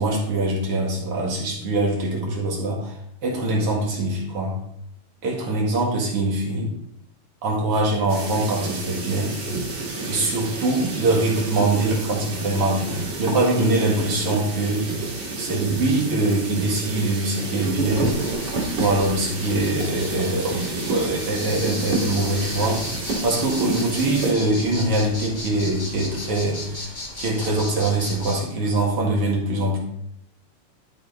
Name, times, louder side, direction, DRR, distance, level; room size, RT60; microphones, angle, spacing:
voice 1, 0.0-2.9 3.2-4.6 5.2-6.7 7.4-9.3 10.1-14.9 15.4-18.1 18.8-22.8 23.2-26.9 27.2-29.8, right 2 dB, 55° right, -2 dB, 2.6 m, -23 dB
sound 1, 8.1-24.3, right 3 dB, 85° right, 3.5 m, -29 dB
sound 2, 17.9-28.4, left 1 dB, 85° left, 0.4 m, -36 dB
12.0 x 4.6 x 3.9 m, 0.76 s
omnidirectional pair, 3.3 m